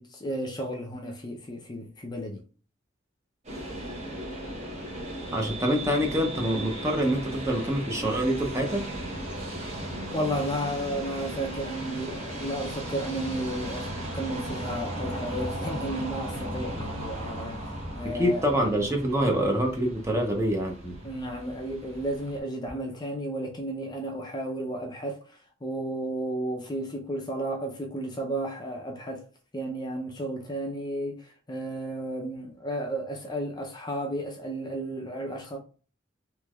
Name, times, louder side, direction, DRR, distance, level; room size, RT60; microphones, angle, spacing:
voice 1, 0.0-2.4 10.1-18.5 21.0-29.3 29.5-35.6, right 1 dB, 20° left, 0.4 m, -33 dB
sound 1, 3.4-22.4, right 1 dB, 35° right, 1.0 m, -36 dB
voice 2, 5.3-8.8 18.1-21.0, equal, 15° right, 0.6 m, -26 dB
3.2 x 3.0 x 2.3 m
head